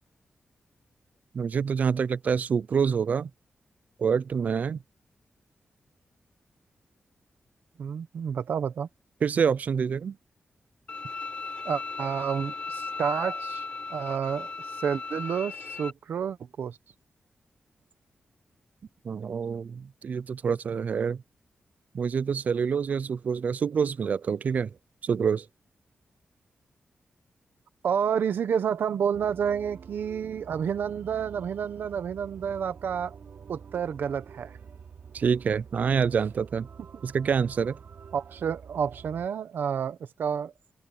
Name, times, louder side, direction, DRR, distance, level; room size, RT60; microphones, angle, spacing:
voice 1, 1.3-3.3 4.0-4.8 9.2-10.2 19.0-21.2 21.9-24.7 25.0-25.5 35.1-36.7 37.0-37.8, right 6 dB, 50° right, 0.4 m, -26 dB
voice 2, 7.8-8.9 11.6-13.6 13.9-14.5 14.8-16.8 27.8-33.1 33.5-34.5 38.1-40.5, right 7 dB, 85° right, 1.2 m, -29 dB
Bowed string instrument, 10.9-15.9, left 3 dB, 35° left, 1.5 m, -36 dB
sound 1, 29.1-39.3, right 6 dB, 65° right, 2.8 m, -48 dB
open air
wide cardioid pair, 175°, 3 cm